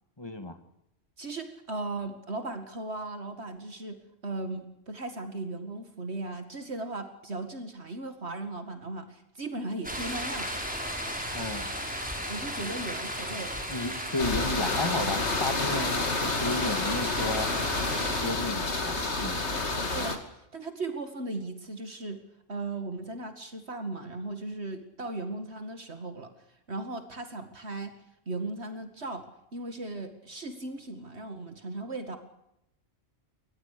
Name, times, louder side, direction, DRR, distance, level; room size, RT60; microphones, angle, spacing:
voice 1, 0.2-0.6 11.3-11.7 13.7-17.5 18.2-18.9 19.2-19.4, left 2 dB, 20° left, 9 dB, 2.0 m, -33 dB
voice 2, 1.2-10.5 12.3-13.5 19.9-22.2 22.5-26.3 26.7-27.9 28.3-29.3 29.5-32.2, right 2 dB, 60° right, 7 dB, 2.3 m, -37 dB
sound 1, 9.8-18.2, equal, 5° right, 5.2 m, -35 dB
sound 2, 14.2-20.2, left 2 dB, 60° left, 2.9 m, -29 dB
24.0 x 20.0 x 6.8 m, 0.83 s
omnidirectional pair, 1.3 m